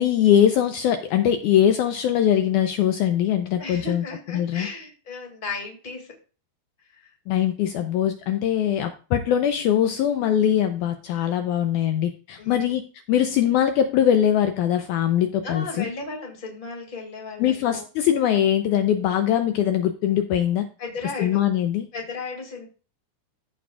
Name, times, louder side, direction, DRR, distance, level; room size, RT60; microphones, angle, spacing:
voice 1, 0.0-4.7 7.3-12.8 13.1-15.9 17.4-20.7 21.2-21.9, left 10 dB, 85° left, 7 dB, 1.8 m, -22 dB
voice 2, 3.6-6.1 6.8-7.1 12.4-12.8 15.4-17.8 20.8-21.4 21.9-22.7, left 3 dB, 20° left, 1 dB, 1.5 m, -35 dB
14.5 x 5.9 x 2.3 m, 0.35 s
omnidirectional pair, 4.1 m